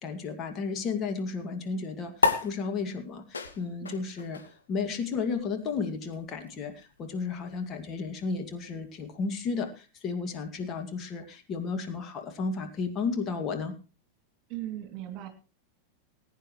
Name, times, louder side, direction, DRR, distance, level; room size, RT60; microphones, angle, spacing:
voice 1, 0.0-4.4 4.7-13.7, left 4 dB, 30° left, 5 dB, 2.1 m, -33 dB
sound 1, 2.2-9.0, left 4 dB, 75° left, 1.7 m, -34 dB
voice 2, 14.5-15.3, right 13 dB, 40° right, 7 dB, 2.7 m, -38 dB
20.5 x 9.7 x 3.1 m, 0.33 s
figure-of-eight pair, 90°, 0 cm